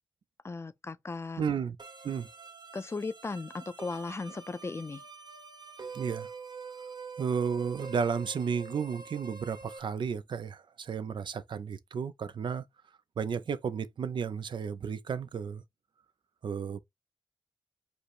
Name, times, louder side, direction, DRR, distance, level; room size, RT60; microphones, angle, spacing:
voice 1, 0.4-1.4 2.7-5.0, left 3 dB, 35° left, 0.4 m, -37 dB
voice 2, 1.4-1.8 2.0-2.3 5.9-6.3 7.2-12.6 13.2-15.6 16.4-16.8, right 6 dB, 80° right, 0.5 m, -33 dB
sound 1, 1.8-9.8, right 5 dB, 65° right, 0.9 m, -46 dB
5.0 x 2.0 x 4.7 m
cardioid pair, 65°, 8 cm